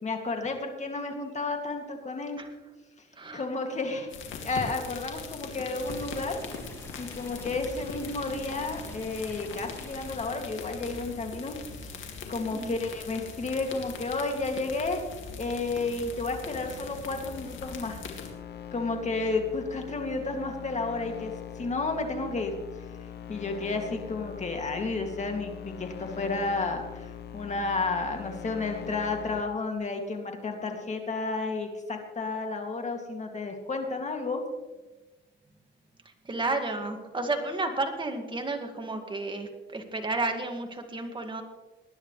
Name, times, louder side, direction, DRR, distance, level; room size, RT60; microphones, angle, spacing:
voice 1, 0.0-2.4 3.3-4.1 4.4-6.4 7.0-12.0 12.3-15.0 15.4-18.0 18.7-21.3 21.6-22.5 23.3-27.1 27.3-34.4, left 3 dB, 35° left, 3 dB, 2.4 m, -32 dB
sound 1, 4.1-18.3, left 5 dB, 75° left, 2.4 m, -41 dB
sound 2, 5.9-10.3, left 1 dB, 15° left, 2.1 m, -46 dB
sound 3, 16.0-29.4, left 8 dB, 55° left, 0.9 m, -43 dB
voice 2, 36.2-41.4, right 2 dB, 25° right, 4 dB, 2.1 m, -32 dB
20.0 x 10.5 x 3.3 m, 1.2 s
cardioid pair, 90°, 20 cm